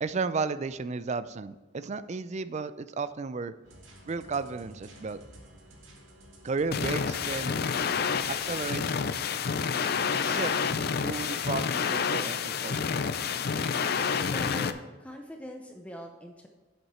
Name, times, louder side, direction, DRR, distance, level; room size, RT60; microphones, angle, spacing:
voice 1, 0.0-3.5 4.1-5.2 6.4-7.6 8.3-8.8 10.2-10.6 10.9-13.0, right 4 dB, 35° right, 14 dB, 0.4 m, -33 dB
sound 1, 3.6-8.8, equal, 85° right, 2.2 m, -51 dB
sound 2, 6.7-14.7, left 6 dB, 55° left, 0.5 m, -29 dB
voice 2, 14.3-16.5, left 1 dB, 5° left, 2 dB, 0.6 m, -42 dB
8.0 x 7.5 x 4.3 m, 1.2 s
head